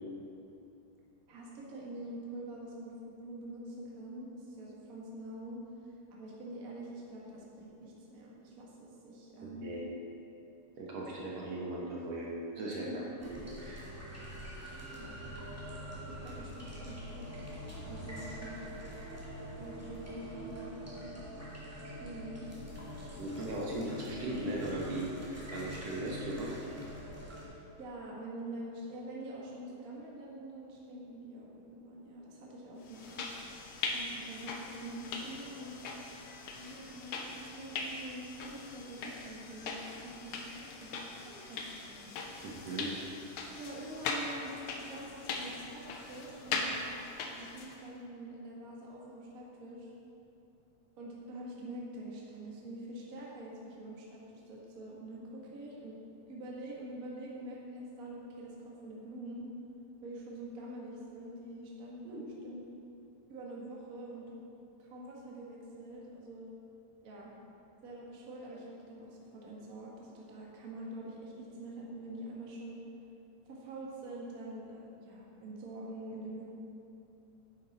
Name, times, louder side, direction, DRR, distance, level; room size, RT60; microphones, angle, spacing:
voice 1, 1.3-5.6 6.1-9.7 12.8-13.0 14.9-15.3 16.1-17.3 17.8-18.6 19.6-21.2 22.0-22.5 27.8-33.2 33.8-35.8 36.5-42.1 43.6-46.8 47.3-49.9 51.0-56.0 56.3-59.5 60.0-62.6 63.3-64.4 64.8-66.5 67.0-67.3 67.8-72.8 73.5-76.4, right 1 dB, 35° right, -4 dB, 1.5 m, -45 dB
voice 2, 9.4-9.8 10.8-12.3 12.6-12.9 13.2-13.9 23.2-25.1 25.5-26.5 42.4-42.9 62.1-62.3, right 2 dB, 60° right, -4 dB, 2.1 m, -38 dB
sound 1, 13.2-27.4, equal, 5° right, 1.9 m, -44 dB
sound 2, 32.9-47.8, left 3 dB, 85° left, 1.2 m, -41 dB
10.5 x 9.6 x 4.2 m, 2.8 s
omnidirectional pair, 3.7 m